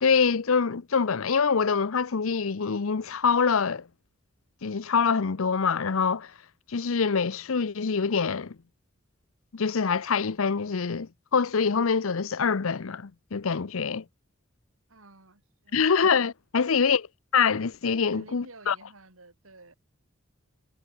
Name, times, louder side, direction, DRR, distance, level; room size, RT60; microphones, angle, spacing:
voice 1, 0.0-3.8 4.6-6.3 6.7-8.6 9.5-14.0 15.7-17.0 17.3-18.8, left 5 dB, 85° left, 0.7 m, -25 dB
voice 2, 14.9-15.9 16.6-16.7 18.1-19.7, right 2 dB, 85° right, 5.4 m, -52 dB
head